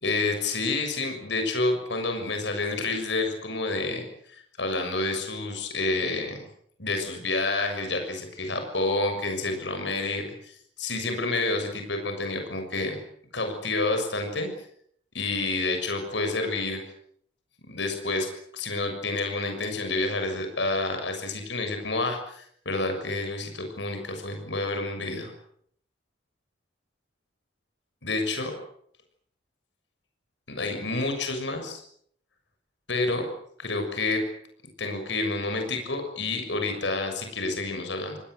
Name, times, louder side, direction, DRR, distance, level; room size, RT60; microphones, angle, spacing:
voice 1, 0.0-4.0 4.3-6.4 6.8-13.0 13.3-14.5 15.1-16.8 17.7-18.3 18.5-25.3 28.0-28.5 30.5-31.8 32.9-33.3 33.6-34.2 34.8-38.2, left 2 dB, 75° left, 5 dB, 6.8 m, -29 dB
28.5 x 20.5 x 8.1 m, 0.66 s
head